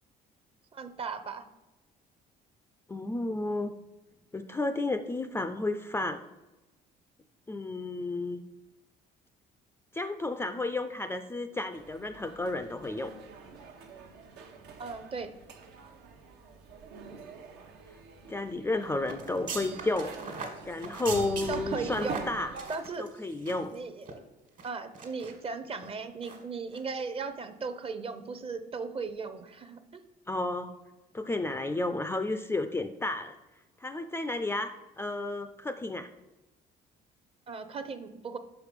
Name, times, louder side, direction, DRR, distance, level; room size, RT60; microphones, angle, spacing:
voice 1, 0.7-1.4 14.8-15.3 21.5-22.2 22.7-23.1 23.7-24.2 24.6-30.1 37.5-38.4, right 4 dB, 35° right, 10 dB, 0.6 m, -37 dB
voice 2, 2.9-3.7 4.3-6.2 7.5-8.4 9.9-13.1 18.3-20.1 20.6-22.5 23.0-23.8 30.3-30.7 31.1-33.3 33.8-34.7 35.0-36.1, left 2 dB, 15° left, 9 dB, 0.3 m, -32 dB
sound 1, 11.7-22.7, right 3 dB, 85° right, 1.0 m, -45 dB
sound 2, 19.1-23.8 24.0-24.1 24.6-25.3 25.7-25.9 26.2-26.4 26.7-26.8, right 5 dB, 50° right, 1.5 m, -41 dB
5.8 x 4.9 x 5.1 m, 1.1 s
cardioid pair, 110°, 17 cm